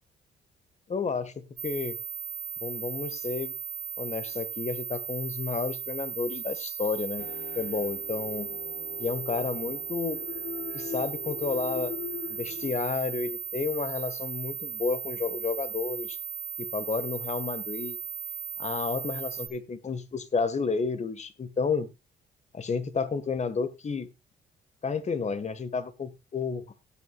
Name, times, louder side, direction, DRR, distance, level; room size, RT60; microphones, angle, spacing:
voice 1, 0.9-2.0 2.6-3.6 4.0-7.3 7.5-8.6 9.0-10.2 10.7-11.9 12.3-16.2 16.6-18.0 18.6-21.9 22.5-24.1 24.8-26.6, left 5 dB, 35° left, 1.8 m, -31 dB
sound 1, 1.6-19.5, right 7 dB, 10° left, 2.8 m, -37 dB
sound 2, 7.2-12.7, left 9 dB, 70° left, 1.6 m, -40 dB
18.0 x 8.2 x 2.5 m
cardioid pair, 90°, 20 cm